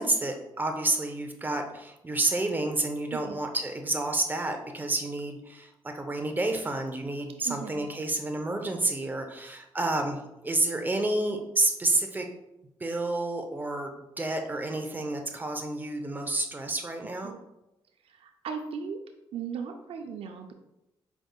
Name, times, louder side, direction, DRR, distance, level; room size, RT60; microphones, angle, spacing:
voice 1, 0.0-12.3 12.8-13.9 14.2-17.3, right 2 dB, 20° right, 4 dB, 0.7 m, -29 dB
voice 2, 7.4-7.9 17.2-17.4 18.0-19.0 19.3-20.5, right 6 dB, 75° right, 5 dB, 0.4 m, -37 dB
5.1 x 3.5 x 2.3 m, 0.89 s
cardioid pair, 65°, 10 cm